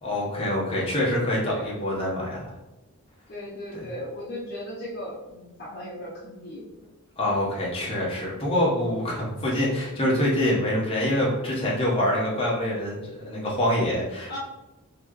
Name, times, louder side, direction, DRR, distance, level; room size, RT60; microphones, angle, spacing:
voice 1, 0.0-2.5 7.2-14.4, left 1 dB, 25° left, -5 dB, 1.1 m, -25 dB
voice 2, 3.3-6.6 14.3-14.4, left 1 dB, 45° left, -6 dB, 0.8 m, -37 dB
4.4 x 2.9 x 3.0 m, 1.0 s
head